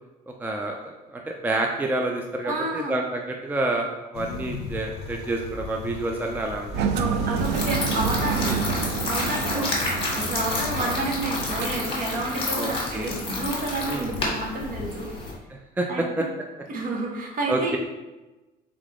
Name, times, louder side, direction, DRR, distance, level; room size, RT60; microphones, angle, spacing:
voice 1, 0.4-6.7 8.4-8.6 9.5-9.7 12.6-13.1 13.9-14.1 15.5-15.9 16.2-16.3 17.5-17.8, right 2 dB, 10° right, 2 dB, 0.4 m, -28 dB
voice 2, 2.4-3.0 6.9-8.6 9.1-9.7 10.1-15.1 15.9-16.3 16.7-17.8, right 2 dB, 55° right, -1 dB, 1.1 m, -30 dB
sound 1, 4.1-15.4, left 4 dB, 75° left, 0.5 m, -39 dB
Engine, 6.7-12.6, right 6 dB, 90° right, 0.4 m, -29 dB
sound 2, 7.4-15.3, left 2 dB, 30° left, 1.4 m, -30 dB
3.6 x 3.4 x 3.7 m, 1.1 s
cardioid pair, 110°, 17 cm